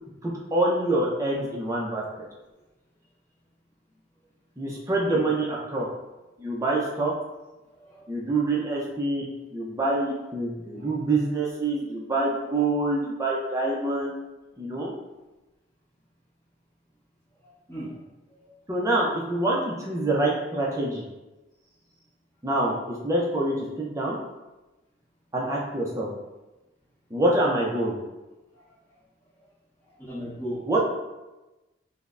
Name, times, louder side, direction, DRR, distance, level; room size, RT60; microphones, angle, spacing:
voice 1, 0.2-2.0 4.6-5.9 6.4-7.1 8.1-9.2 9.5-14.2 14.6-14.9 18.7-21.0 22.4-24.2 25.3-26.1 27.1-28.0 30.7-30.8, right 2 dB, 15° right, -3 dB, 0.4 m, -26 dB
voice 2, 7.7-8.0 10.7-10.9 17.4-18.0 18.4-18.5 28.5-29.0 29.8-30.7, equal, 10° left, -8 dB, 1.0 m, -38 dB
5.3 x 2.0 x 2.5 m, 1.1 s
head